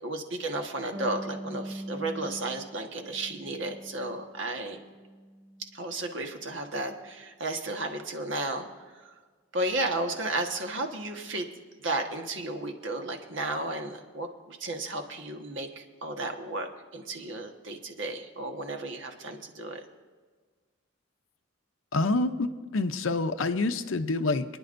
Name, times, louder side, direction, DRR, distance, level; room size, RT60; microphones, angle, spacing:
voice 1, 0.0-4.9 5.7-8.7 8.9-9.1 9.5-11.5 11.8-19.8, right 2 dB, 65° right, 4 dB, 1.4 m, -33 dB
Harp, 0.9-4.3 4.6-5.7, right 1 dB, 30° right, 2.2 m, -42 dB
voice 2, 21.9-24.4, left 3 dB, 80° left, 7 dB, 0.7 m, -27 dB
27.5 x 10.5 x 2.6 m, 1.5 s
head